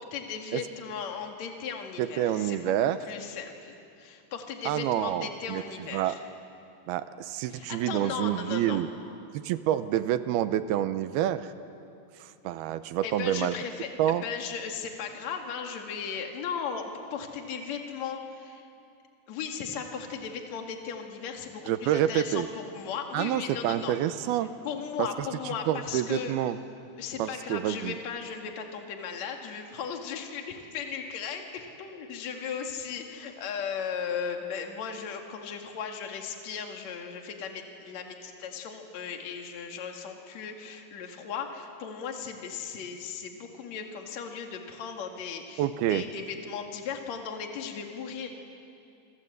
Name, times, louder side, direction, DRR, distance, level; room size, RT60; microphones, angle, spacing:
voice 1, 0.0-2.7 3.0-6.2 7.5-8.8 13.0-18.7 19.3-23.9 24.6-26.3 27.0-48.3, left 6 dB, 50° left, 3 dB, 3.0 m, -37 dB
voice 2, 2.0-3.0 4.7-5.6 5.9-6.1 6.9-8.9 9.3-11.5 12.2-13.5 14.0-14.2 21.7-22.5 23.1-24.5 25.0-25.3 25.7-26.6 27.2-28.0 45.6-46.0, right 12 dB, 80° right, 12 dB, 2.6 m, -28 dB
28.0 x 26.0 x 8.1 m, 2.6 s
omnidirectional pair, 4.7 m